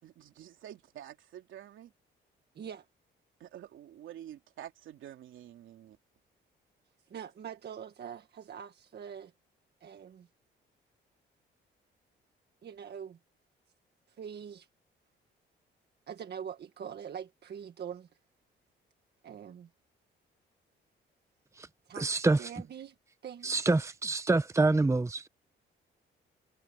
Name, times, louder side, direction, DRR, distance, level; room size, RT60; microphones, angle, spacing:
voice 1, 0.0-1.9 3.4-6.0, right 11 dB, 75° right, 3.4 m, -48 dB
voice 2, 2.5-2.8 7.1-9.3 9.8-10.3 12.6-13.2 14.1-14.7 16.1-18.1 19.2-19.7 21.8-22.9 23.2-23.7, right 8 dB, 55° right, 1.7 m, -43 dB
voice 3, 22.0-22.4 23.4-25.3, right 3 dB, 15° right, 1.0 m, -26 dB
cardioid pair, 90°, 20 cm